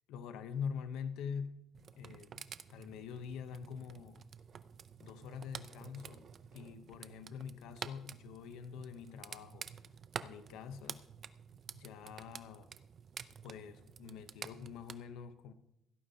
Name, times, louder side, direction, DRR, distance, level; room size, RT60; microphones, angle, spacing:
voice 1, 0.1-1.7 2.0-4.3 5.0-9.7 10.2-11.1 11.7-12.7 13.4-15.5, left 7 dB, 80° left, 0.7 m, -45 dB
sound 1, 1.7-15.0, right 7 dB, 35° right, 0.4 m, -50 dB
16.5 x 12.5 x 2.8 m
cardioid pair, 180°, 0 cm